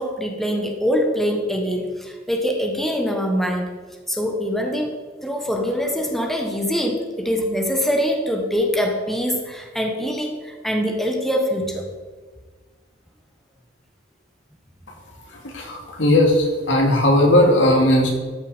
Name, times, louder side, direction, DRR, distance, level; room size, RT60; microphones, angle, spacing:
voice 1, 0.0-3.7 4.1-4.9 5.2-11.8, equal, ahead, 1 dB, 1.2 m, -23 dB
voice 2, 15.1-18.1, left 1 dB, 75° left, 0 dB, 2.5 m, -17 dB
13.5 x 6.7 x 5.1 m, 1.4 s
head